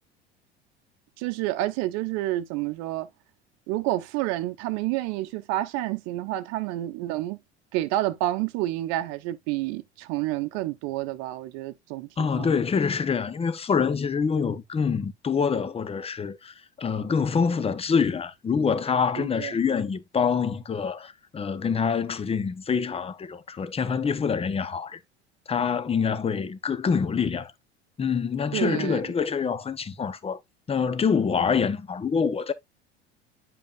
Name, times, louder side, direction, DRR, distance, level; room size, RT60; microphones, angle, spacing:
voice 1, 1.2-3.1 3.7-7.4 7.7-12.5 19.2-19.6 28.5-29.0, right 15 dB, 55° right, 0.9 m, -29 dB
voice 2, 12.2-25.0 25.5-27.5 28.0-30.4 30.7-32.5, left 6 dB, 20° left, 0.8 m, -26 dB
9.6 x 5.2 x 2.5 m
figure-of-eight pair, 70°, 32 cm